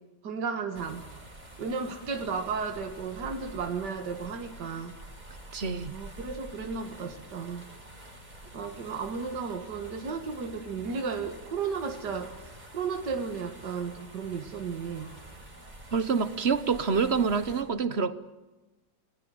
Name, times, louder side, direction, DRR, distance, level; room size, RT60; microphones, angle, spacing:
voice 1, 0.2-1.1 1.6-4.9 5.9-7.7 8.5-15.1, right 5 dB, 60° right, 4 dB, 2.3 m, -34 dB
sound 1, 0.7-17.6, right 1 dB, 20° right, 5.3 m, -48 dB
voice 2, 5.5-5.9 15.9-18.1, right 5 dB, 40° right, 14 dB, 1.2 m, -27 dB
28.5 x 20.0 x 7.9 m, 1.2 s
omnidirectional pair, 2.0 m